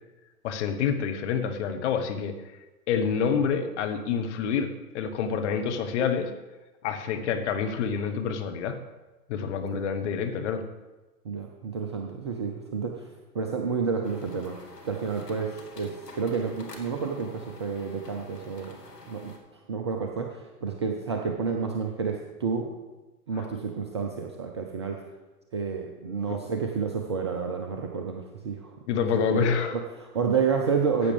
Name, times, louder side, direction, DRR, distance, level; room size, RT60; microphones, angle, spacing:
voice 1, 0.4-2.4 2.9-6.3 6.8-8.8 9.3-10.6 23.3-23.5 26.3-26.4 28.9-29.8, left 6 dB, 45° left, 6 dB, 1.3 m, -27 dB
voice 2, 11.2-13.1 13.3-14.6 14.8-18.8 19.1-22.7 23.3-25.0 25.5-28.7 29.1-31.1, right 5 dB, 20° right, 2 dB, 0.3 m, -30 dB
sound 1, 14.0-19.4, left 2 dB, 90° left, 1.9 m, -47 dB
14.0 x 8.5 x 3.4 m, 1.1 s
figure-of-eight pair, 110°, 47 cm